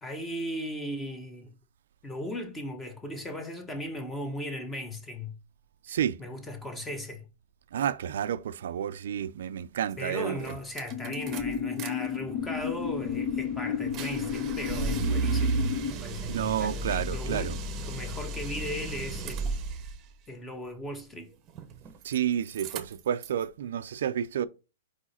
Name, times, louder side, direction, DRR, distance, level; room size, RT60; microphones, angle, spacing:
voice 1, 0.0-1.5 2.0-5.4 5.9-7.2 10.0-19.6 20.3-21.3, left 1 dB, 10° left, 1.0 m, -37 dB
voice 2, 7.7-10.4 16.3-17.5 22.0-24.5, right 9 dB, 70° right, 0.4 m, -30 dB
sound 1, 9.9-10.0 10.4-11.9 12.2-20.0 21.5-22.2 22.4-23.4, right 4 dB, 25° right, 0.8 m, -34 dB
sound 2, 10.9-15.9, left 8 dB, 40° left, 0.8 m, -32 dB
4.8 x 4.8 x 4.3 m
hypercardioid pair, 155°, 0 cm